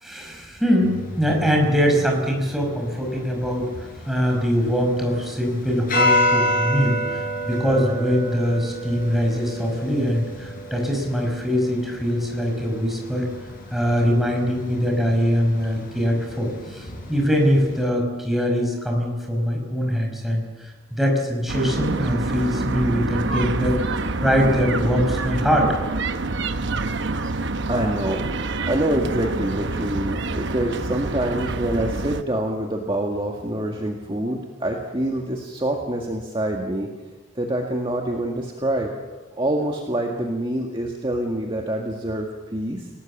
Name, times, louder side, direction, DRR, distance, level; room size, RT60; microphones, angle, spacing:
voice 1, 0.0-3.7 4.1-13.3 13.7-25.8, equal, ahead, 0 dB, 5.3 m, -22 dB
sound 1, 0.8-17.9, left 1 dB, 40° left, 6.6 m, -30 dB
sound 2, 21.5-32.2, right 3 dB, 55° right, 1.0 m, -27 dB
voice 2, 27.7-36.9 37.4-38.9 39.4-42.9, right 1 dB, 25° right, 1 dB, 1.8 m, -26 dB
29.0 x 18.5 x 7.3 m, 1.2 s
head